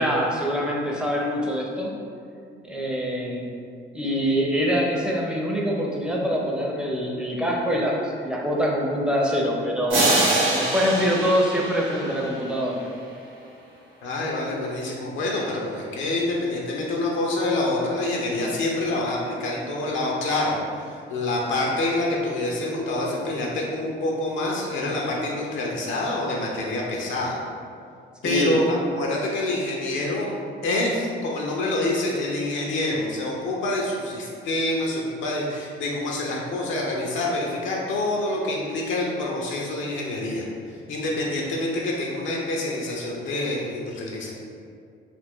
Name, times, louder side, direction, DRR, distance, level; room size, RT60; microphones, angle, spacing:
voice 1, 0.0-1.9 2.7-3.5 3.9-10.2 10.5-12.9 28.2-28.5, equal, 5° right, -2 dB, 0.5 m, -24 dB
sound 1, 9.9-12.6, right 2 dB, 85° right, 0.9 m, -24 dB
voice 2, 14.0-27.4 28.2-30.3 30.6-44.3, left 2 dB, 75° left, -2 dB, 0.5 m, -26 dB
2.5 x 2.5 x 3.5 m, 2.3 s
cardioid pair, 90°, 20 cm